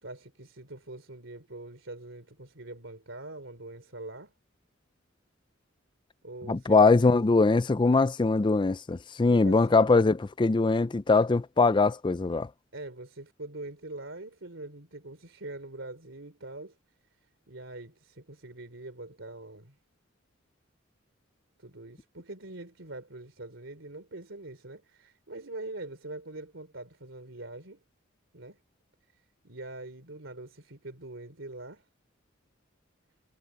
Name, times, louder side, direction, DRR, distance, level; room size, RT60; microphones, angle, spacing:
voice 1, 0.0-4.3 6.2-7.2 9.3-9.8 12.7-16.8 17.5-19.8 21.6-27.8 28.3-28.6 29.4-31.9, right 2 dB, 70° right, 3.7 m, -43 dB
voice 2, 6.5-12.5, left 3 dB, 25° left, 0.4 m, -22 dB
head